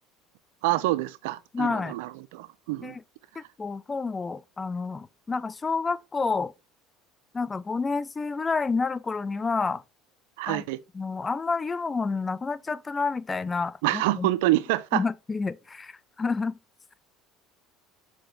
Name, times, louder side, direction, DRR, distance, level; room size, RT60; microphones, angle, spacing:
voice 1, 0.6-3.0 10.4-10.8 13.8-15.0, right 17 dB, 80° right, 0.4 m, -26 dB
voice 2, 1.5-1.9 2.8-3.0 3.4-6.5 7.3-9.8 10.5-10.6 10.9-14.3 14.9-16.6, left 4 dB, 25° left, 0.5 m, -29 dB
5.0 x 4.7 x 4.5 m
supercardioid pair, 90°, 0 cm